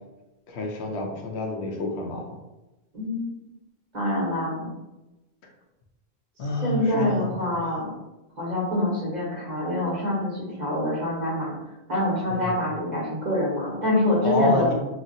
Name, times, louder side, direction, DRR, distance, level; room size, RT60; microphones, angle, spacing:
voice 1, 0.5-2.4 6.4-7.7 12.3-12.6 14.2-14.7, left 1 dB, 80° left, 1 dB, 0.9 m, -28 dB
voice 2, 2.9-3.2 3.9-4.7 6.6-7.9 8.4-11.5 11.9-14.7, left 1 dB, 45° right, -6 dB, 1.1 m, -25 dB
2.9 x 2.4 x 2.6 m, 1.0 s
omnidirectional pair, 1.1 m